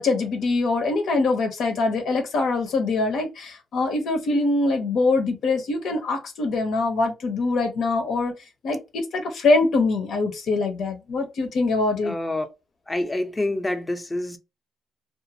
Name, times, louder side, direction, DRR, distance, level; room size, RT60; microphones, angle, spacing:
voice 1, 0.0-8.3 8.6-12.1, left 3 dB, 75° left, 0.7 m, -23 dB
voice 2, 12.0-12.5 12.9-14.4, left 1 dB, 15° left, 0.6 m, -27 dB
2.5 x 2.4 x 2.7 m
cardioid pair, 90°, 0 cm